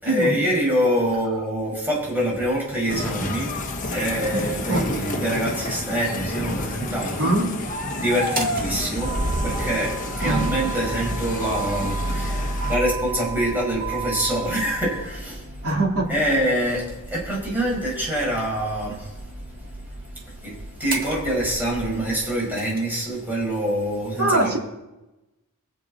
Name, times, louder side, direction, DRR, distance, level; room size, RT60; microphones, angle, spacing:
voice 1, 0.0-3.5 3.9-7.3 7.9-9.1 9.4-15.4 16.1-19.1 20.4-20.5 20.8-24.6, right 1 dB, 10° right, -4 dB, 5.2 m, -25 dB
sound 1, 2.9-12.7, left 2 dB, 40° left, 1.2 m, -30 dB
Motor vehicle (road), 8.1-22.8, right 2 dB, 45° right, 1.7 m, -32 dB
voice 2, 15.6-16.2 24.2-24.6, right 1 dB, 85° right, -2 dB, 2.9 m, -22 dB
23.5 x 7.8 x 4.1 m, 1.0 s
head